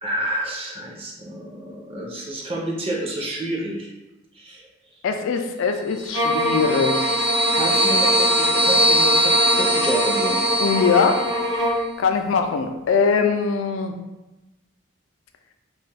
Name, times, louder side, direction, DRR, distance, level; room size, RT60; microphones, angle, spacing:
voice 1, 0.0-3.9 4.3-4.7 7.6-10.5, right 1 dB, 30° right, -2 dB, 0.5 m, -29 dB
voice 2, 5.0-7.2 10.6-11.3 11.7-13.9, left 5 dB, 85° left, 5 dB, 0.3 m, -22 dB
sound 1, 6.0-11.5, right 1 dB, 55° right, 1.1 m, -22 dB
sound 2, 6.1-11.9, equal, 70° right, 0.8 m, -24 dB
2.5 x 2.3 x 3.2 m, 1.0 s
head